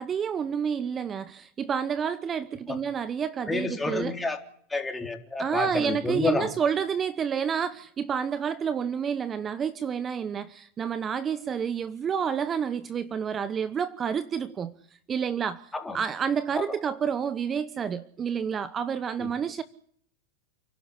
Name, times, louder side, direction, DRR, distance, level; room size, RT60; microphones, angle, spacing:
voice 1, 0.0-4.2 5.4-14.7 15.1-19.6, right 7 dB, 30° right, 1.0 m, -29 dB
voice 2, 3.5-4.4 4.7-6.5 15.7-16.0 16.6-16.7 19.2-19.3, left 3 dB, 10° left, 3.6 m, -29 dB
29.5 x 11.5 x 10.0 m
hypercardioid pair, 100°, 0 cm